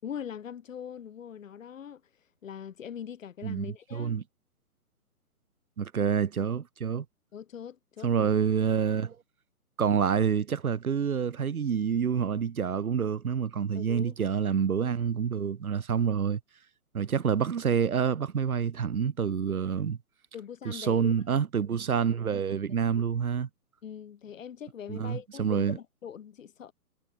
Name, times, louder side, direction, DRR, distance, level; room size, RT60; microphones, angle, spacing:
voice 1, 0.0-2.0 2.4-4.2 7.3-8.3 13.7-14.1 20.3-21.1 23.8-26.7, left 8 dB, 55° left, 4.3 m, -42 dB
voice 2, 3.4-4.2 5.8-7.0 8.0-9.2 9.8-16.4 16.9-20.0 20.6-23.5 24.9-25.8, right 7 dB, 65° right, 2.7 m, -27 dB
figure-of-eight pair, 135°, 46 cm